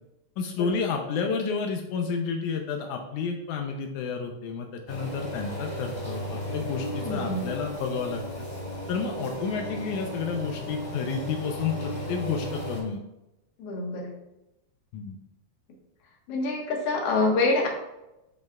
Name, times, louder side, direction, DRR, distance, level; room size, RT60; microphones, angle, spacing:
voice 1, 0.4-8.2 8.9-13.0 14.9-15.2, left 5 dB, 90° left, 3 dB, 1.7 m, -30 dB
sound 1, 4.9-12.8, equal, 20° left, 2.7 m, -35 dB
voice 2, 7.0-7.4 13.6-14.1 16.3-17.7, left 3 dB, 55° left, -1 dB, 1.8 m, -26 dB
11.0 x 5.3 x 2.4 m, 0.92 s
omnidirectional pair, 4.3 m